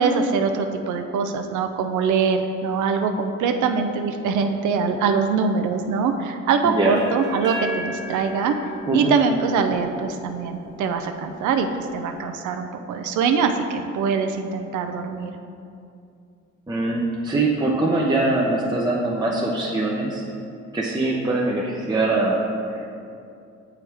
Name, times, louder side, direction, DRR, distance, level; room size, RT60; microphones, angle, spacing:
voice 1, 0.0-8.5 8.9-15.4, right 5 dB, 75° right, 5 dB, 0.5 m, -23 dB
voice 2, 6.6-7.0 8.9-9.1 16.7-20.2 20.7-22.4, right 2 dB, 15° right, -4 dB, 0.7 m, -22 dB
sound 1, 7.0-10.8, left 1 dB, 35° right, 1.5 m, -35 dB
7.1 x 4.7 x 3.4 m, 2.5 s
cardioid pair, 90°, 30 cm